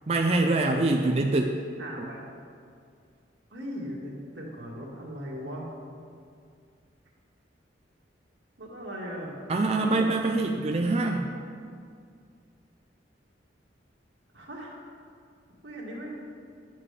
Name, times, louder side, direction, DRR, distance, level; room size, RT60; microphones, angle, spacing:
voice 1, 0.1-1.5 2.0-2.1 9.5-11.3, right 2 dB, 35° right, 2 dB, 0.4 m, -24 dB
voice 2, 1.8-2.2 3.5-5.6 8.6-10.1 14.3-14.8 15.6-16.2, equal, 80° right, -3 dB, 1.8 m, -38 dB
11.0 x 7.4 x 3.3 m, 2.3 s
head